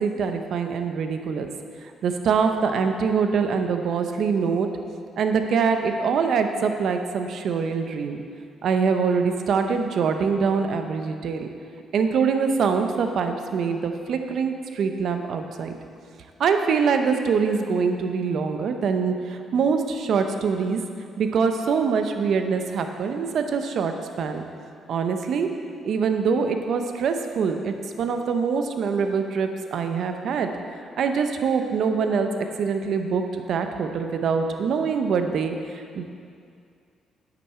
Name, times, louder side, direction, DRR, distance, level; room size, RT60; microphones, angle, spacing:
voice 1, 0.0-1.5 2.0-4.7 5.2-8.2 8.6-11.5 11.9-15.7 16.4-20.8 21.2-24.4 24.9-25.5 25.8-30.5 31.0-36.0, right 5 dB, 65° right, 6 dB, 0.8 m, -24 dB
9.3 x 8.5 x 4.4 m, 2.3 s
cardioid pair, 90°, 0 cm